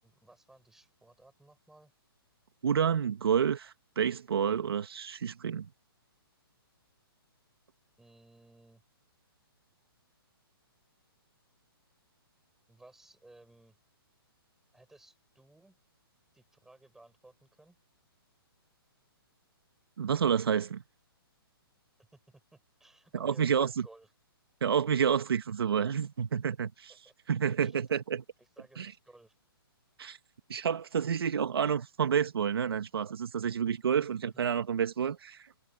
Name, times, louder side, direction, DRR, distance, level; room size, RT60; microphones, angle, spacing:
voice 1, 0.0-1.9 8.0-8.8 12.7-13.8 14.7-15.8 16.3-17.8 22.3-24.1 27.0-27.1 27.6-27.8 28.4-29.3 34.0-34.1 34.3-34.4, right 2 dB, 5° right, 7.2 m, -58 dB
voice 2, 2.6-5.7 20.0-20.8 23.1-23.7 24.6-26.9 27.3-28.2 28.8-28.9 30.0-30.2 30.5-35.5, right 7 dB, 70° right, 1.9 m, -29 dB
hypercardioid pair, 160°, 13 cm